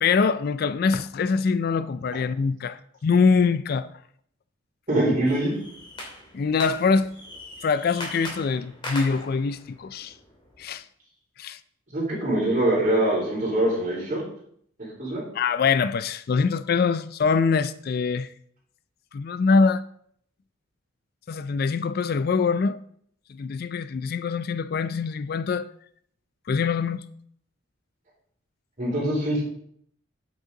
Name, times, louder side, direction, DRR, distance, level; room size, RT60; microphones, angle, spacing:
voice 1, 0.0-3.9 6.3-7.1 7.6-10.1 10.6-10.8 11.4-11.6 15.3-18.3 19.1-19.8 21.3-22.8 23.3-25.7 26.5-27.0, left 5 dB, 45° left, 0.3 m, -24 dB
voice 2, 4.9-5.5 11.9-14.2 15.0-15.2 28.8-29.4, right 1 dB, 40° right, 4.4 m, -23 dB
sound 1, 5.3-10.7, left 1 dB, 25° left, 2.7 m, -40 dB
8.9 x 8.0 x 3.8 m
head